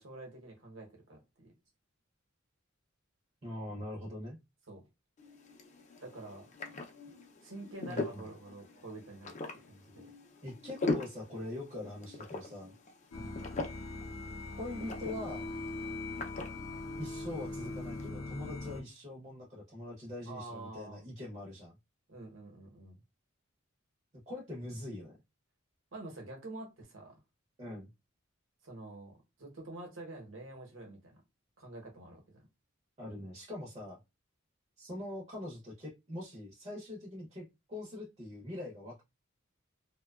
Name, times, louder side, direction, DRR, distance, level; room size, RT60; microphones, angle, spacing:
voice 1, 0.0-1.5 4.7-4.8 6.0-6.5 7.4-10.1 13.1-13.4 20.3-21.0 22.1-23.0 25.9-27.2 28.6-31.2 31.6-32.4, right 2 dB, 70° right, 0.9 m, -47 dB
voice 2, 3.4-4.4 7.9-8.3 10.4-12.7 14.6-15.5 17.0-21.7 24.3-25.2 27.6-27.9 33.0-34.0 34.8-39.0, left 1 dB, 30° right, 0.7 m, -43 dB
sound 1, 5.2-18.1, left 3 dB, 35° left, 0.5 m, -42 dB
sound 2, 13.1-18.8, left 2 dB, 80° left, 0.6 m, -41 dB
2.7 x 2.2 x 2.3 m
head